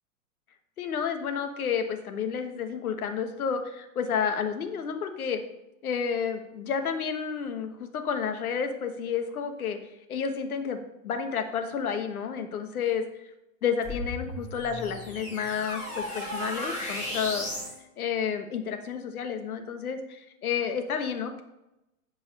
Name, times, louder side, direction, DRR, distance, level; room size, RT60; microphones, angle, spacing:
voice 1, 0.8-5.4 5.8-9.8 10.1-13.0 13.6-17.5 18.0-21.4, left 7 dB, 80° left, 7 dB, 1.4 m, -30 dB
sound 1, 13.8-17.8, left 1 dB, 15° left, 3.6 m, -35 dB
11.0 x 4.7 x 5.4 m, 0.92 s
hypercardioid pair, 115°, 43 cm